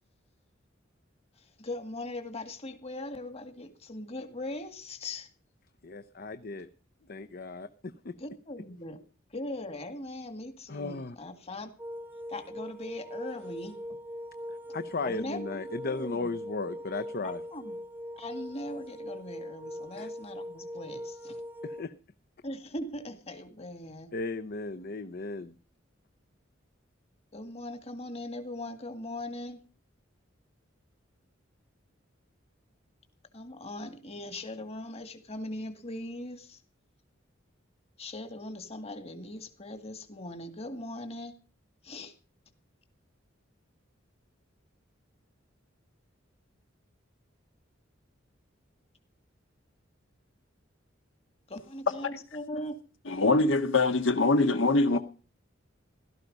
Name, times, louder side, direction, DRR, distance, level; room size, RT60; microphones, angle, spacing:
voice 1, 1.6-5.3 8.2-9.0 9.3-11.7 12.3-13.7 15.0-15.6 15.9-16.3 17.2-17.7 18.2-21.4 22.4-24.1 27.3-29.6 33.3-36.6 38.0-41.3 41.8-42.1 51.5-52.8, left 1 dB, 35° left, 2.2 m, -40 dB
voice 2, 5.8-6.7 7.1-8.1 10.7-11.2 14.5-17.4 20.0-20.1 21.6-21.9 24.1-25.5 54.9-55.0, left 3 dB, 50° left, 0.8 m, -36 dB
sound 1, 11.8-21.8, equal, 10° right, 0.9 m, -41 dB
voice 3, 53.0-55.0, left 3 dB, 75° left, 1.6 m, -23 dB
16.5 x 13.0 x 5.4 m
head